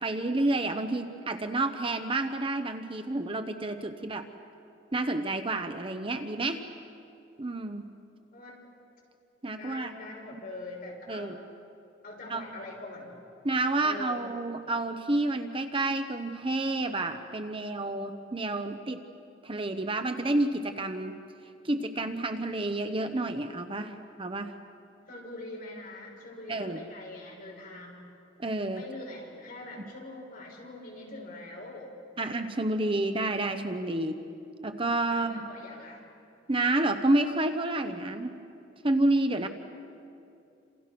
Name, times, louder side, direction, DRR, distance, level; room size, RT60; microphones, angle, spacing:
voice 1, 0.0-4.3 4.9-6.6 7.4-7.9 9.4-9.9 11.1-11.4 12.3-12.4 13.4-19.0 19.4-21.1 21.6-24.5 26.5-26.8 28.4-28.8 32.2-34.2 34.6-35.4 36.5-38.3 38.8-39.5, right 2 dB, 30° right, 7 dB, 1.0 m, -29 dB
voice 2, 9.6-11.4 12.0-13.2 13.8-14.2 25.1-28.1 28.7-31.9 35.1-36.0, left 2 dB, 50° left, -1 dB, 6.6 m, -43 dB
28.5 x 27.5 x 6.1 m, 2.6 s
head